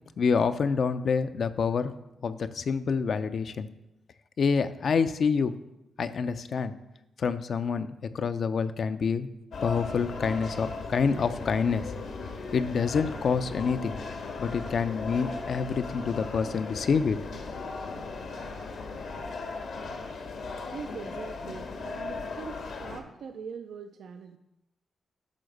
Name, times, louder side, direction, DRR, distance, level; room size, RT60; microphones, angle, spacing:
voice 1, 0.2-1.9 2.2-3.7 4.4-5.5 6.0-6.7 7.2-9.3 9.6-11.8 12.5-14.0 14.4-17.2 17.6-17.7, left 5 dB, 60° left, 10 dB, 0.6 m, -27 dB
sound 1, 9.5-23.0, left 4 dB, 75° left, 1.5 m, -37 dB
voice 2, 20.7-24.4, right 6 dB, 75° right, 7 dB, 0.5 m, -42 dB
11.5 x 3.9 x 6.6 m, 0.93 s
cardioid pair, 85°, 0 cm